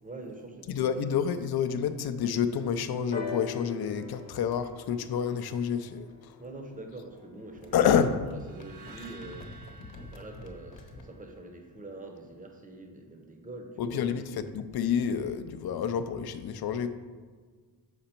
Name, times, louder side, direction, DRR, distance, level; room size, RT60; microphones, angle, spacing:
voice 1, 0.0-0.9 6.4-9.6 10.0-14.2, right 2 dB, 20° right, 3 dB, 0.7 m, -45 dB
voice 2, 0.7-6.3 7.7-8.1 13.8-16.9, left 7 dB, 60° left, 10 dB, 0.5 m, -28 dB
sound 1, 3.1-6.9 7.9-8.0, left 5 dB, 20° left, 0.8 m, -41 dB
sound 2, 4.1-6.7 7.0-11.1, left 2 dB, 80° left, 0.9 m, -50 dB
sound 3, 8.4-11.6, right 3 dB, 60° right, 0.6 m, -52 dB
6.6 x 5.0 x 4.3 m, 1.5 s
wide cardioid pair, 180°, 44 cm